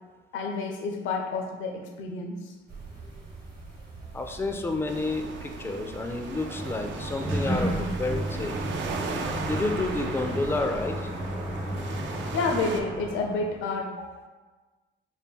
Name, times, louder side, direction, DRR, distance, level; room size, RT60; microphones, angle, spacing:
voice 1, 0.3-2.5 9.0-9.1 12.3-14.3, left 3 dB, 80° left, 3 dB, 0.6 m, -30 dB
sound 1, 2.7-10.6, right 3 dB, 50° right, 1.0 m, -45 dB
voice 2, 4.1-8.6 9.5-11.0, left 2 dB, 10° left, 5 dB, 0.3 m, -30 dB
sound 2, 4.9-12.8, right 5 dB, 65° right, 0.5 m, -38 dB
Sliding door, 6.2-13.6, right 1 dB, 90° right, 1.0 m, -32 dB
4.3 x 2.2 x 3.6 m, 1.3 s
cardioid pair, 90°, 20 cm